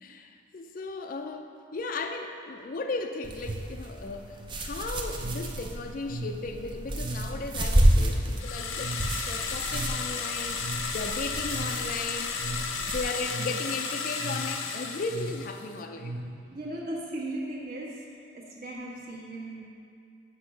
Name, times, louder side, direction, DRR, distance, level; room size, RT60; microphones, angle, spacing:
voice 1, 0.0-9.0 9.3-16.1, left 3 dB, 45° left, 6 dB, 0.4 m, -36 dB
sound 1, 3.2-13.0, right 1 dB, 25° right, 0.5 m, -30 dB
sound 2, 5.1-16.8, right 1 dB, 85° right, 1.1 m, -39 dB
sound 3, 8.4-15.7, left 5 dB, 85° left, 0.7 m, -34 dB
voice 2, 16.5-19.6, right 1 dB, 45° right, -4 dB, 1.4 m, -37 dB
6.3 x 5.9 x 6.5 m, 2.5 s
head